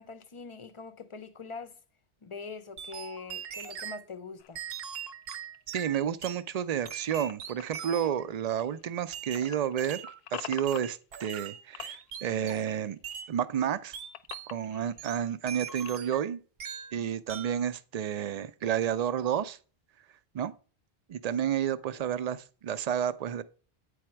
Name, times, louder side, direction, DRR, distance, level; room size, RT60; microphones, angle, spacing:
voice 1, 0.0-1.8 2.2-4.6, left 4 dB, 40° left, 0.5 m, -43 dB
sound 1, 2.8-4.0 4.5-6.4 6.8-8.2 9.1-10.2 10.7-12.8 13.0-13.3 13.9-14.5 15.0-16.3 16.6-17.0 17.3-17.6, right 8 dB, 70° right, 0.9 m, -41 dB
sound 2, 4.4-9.1 9.4-11.5 11.7-13.2 13.5-16.2, left 10 dB, 80° left, 0.8 m, -47 dB
voice 2, 5.7-10.0 10.3-13.0 13.3-14.0 14.5-16.4 16.9-19.6 20.3-20.5 21.1-23.4, right 9 dB, 50° right, 0.5 m, -31 dB
8.6 x 4.9 x 4.4 m
omnidirectional pair, 1.0 m